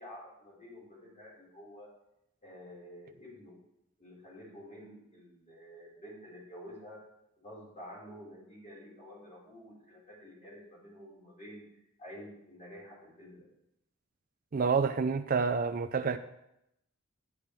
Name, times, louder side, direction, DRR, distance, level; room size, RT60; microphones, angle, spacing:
voice 1, 0.0-1.9 2.4-3.6 4.0-7.0 7.4-11.6 12.0-13.4, equal, 35° left, 5.0 m, -50 dB
voice 2, 14.5-16.2, right 5 dB, 40° right, 0.4 m, -28 dB
11.5 x 10.5 x 3.4 m
head